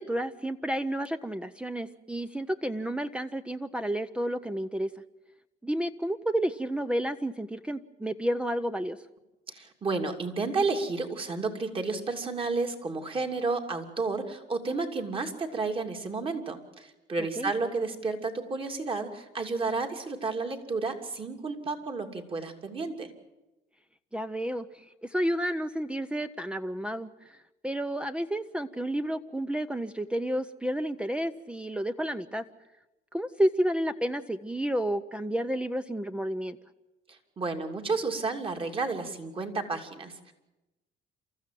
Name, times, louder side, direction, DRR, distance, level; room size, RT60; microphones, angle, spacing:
voice 1, 0.0-4.9 5.6-9.0 17.4-17.5 24.1-32.4 33.1-36.6, right 1 dB, 5° right, 10 dB, 0.7 m, -31 dB
voice 2, 9.5-23.1 37.1-40.3, right 3 dB, 30° right, 4 dB, 2.9 m, -31 dB
28.5 x 14.5 x 7.6 m, 1.0 s
cardioid pair, 110°, 17 cm